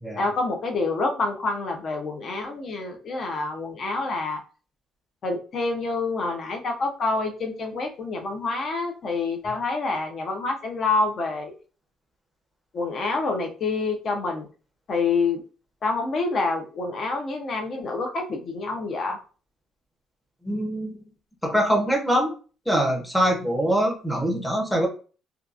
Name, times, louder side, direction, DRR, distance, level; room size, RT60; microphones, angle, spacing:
voice 1, 0.2-4.4 5.2-11.5 12.7-14.5 14.9-15.4 15.8-19.2, left 3 dB, 45° left, 3 dB, 0.6 m, -27 dB
voice 2, 20.4-21.0 21.4-22.3 22.7-24.9, equal, ahead, 0 dB, 0.7 m, -23 dB
2.7 x 2.3 x 2.4 m, 0.37 s
cardioid pair, 130°, 0 cm